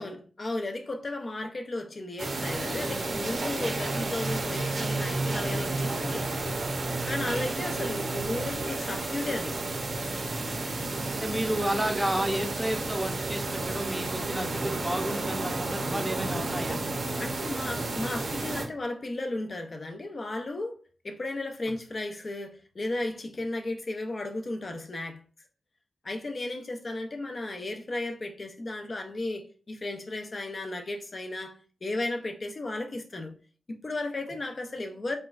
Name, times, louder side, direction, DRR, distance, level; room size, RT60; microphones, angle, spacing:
voice 1, 0.0-6.3 7.1-9.6 17.2-20.7 21.0-25.2 26.0-33.4 33.7-35.2, left 2 dB, 40° left, 0.4 m, -34 dB
sound 1, 2.2-18.7, right 2 dB, 60° right, 0.7 m, -31 dB
voice 2, 11.2-16.8, right 1 dB, 5° right, 0.6 m, -31 dB
4.3 x 2.2 x 2.4 m
wide cardioid pair, 100°, 0 cm